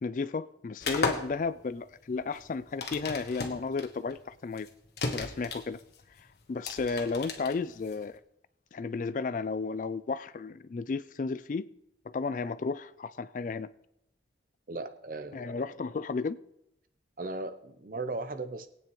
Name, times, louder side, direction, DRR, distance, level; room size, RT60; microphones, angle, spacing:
voice 1, 0.0-4.7 5.1-5.8 6.2-8.2 8.7-11.6 12.1-13.7 15.3-16.4, left 4 dB, 45° left, 0.3 m, -33 dB
sound 1, 0.8-8.2, left 3 dB, 65° left, 1.3 m, -36 dB
voice 2, 14.7-15.9 17.2-18.7, right 2 dB, 50° right, 0.7 m, -38 dB
21.0 x 9.0 x 3.1 m
head